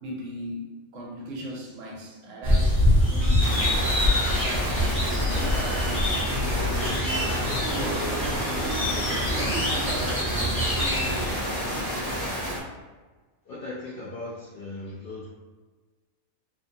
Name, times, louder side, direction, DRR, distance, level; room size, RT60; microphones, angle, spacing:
voice 1, 0.0-3.9 4.2-7.3 7.6-12.1, right 1 dB, 70° right, -2 dB, 0.9 m, -38 dB
sound 1, 2.4-11.3, left 1 dB, 15° right, 0.5 m, -25 dB
sound 2, 3.4-12.6, equal, 40° left, 0.8 m, -30 dB
sound 3, 6.1-11.9, left 1 dB, 85° left, 1.1 m, -38 dB
voice 2, 13.4-15.3, left 2 dB, 70° left, -6 dB, 0.5 m, -38 dB
2.6 x 2.2 x 2.6 m, 1.3 s
omnidirectional pair, 1.5 m